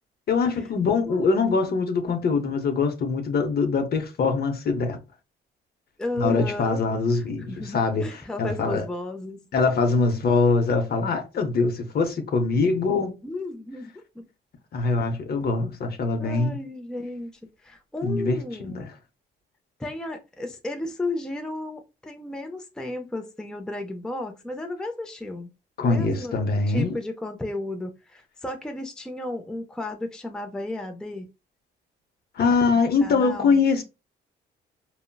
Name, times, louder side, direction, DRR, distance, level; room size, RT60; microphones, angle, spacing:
voice 1, 0.3-5.0 6.2-8.8 9.5-13.2 14.7-16.6 18.0-18.4 18.6-18.9 25.8-27.0 32.4-33.8, left 4 dB, 50° left, 0.7 m, -23 dB
voice 2, 6.0-6.8 7.2-9.5 13.2-14.2 16.2-17.3 17.6-18.9 19.8-25.5 25.8-26.3 26.7-31.3 33.0-33.6, left 2 dB, 5° left, 0.4 m, -33 dB
3.7 x 2.0 x 2.2 m
cardioid pair, 90°, 20 cm